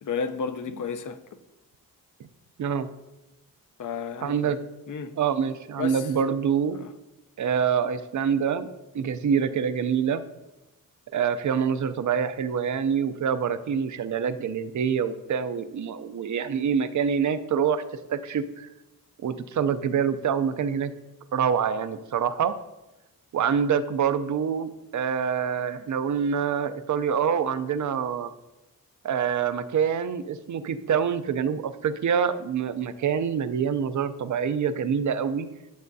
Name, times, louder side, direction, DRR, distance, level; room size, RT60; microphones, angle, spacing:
voice 1, 0.0-1.2 3.8-4.5 4.9-5.1 5.8-6.0 6.8-6.9, left 6 dB, 60° left, 0.6 m, -32 dB
voice 2, 4.2-4.6 5.2-6.8 7.4-8.7 8.9-10.2 11.1-17.8 18.1-18.7 19.2-20.9 21.3-22.5 23.3-28.3 29.0-35.5, right 7 dB, 55° right, 0.5 m, -26 dB
11.5 x 7.4 x 2.7 m
wide cardioid pair, 160°, 35 cm